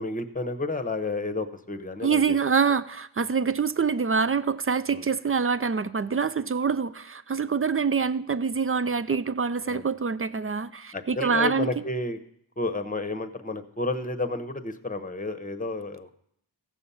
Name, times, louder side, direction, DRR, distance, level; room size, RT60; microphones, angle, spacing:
voice 1, 0.0-2.4 4.9-5.0 9.7-9.9 10.9-12.2 12.6-16.1, left 2 dB, 20° left, 9 dB, 1.0 m, -31 dB
voice 2, 2.0-11.7, right 5 dB, 30° right, 14 dB, 0.4 m, -25 dB
15.5 x 6.9 x 5.6 m, 0.71 s
wide cardioid pair, 65°, 45 cm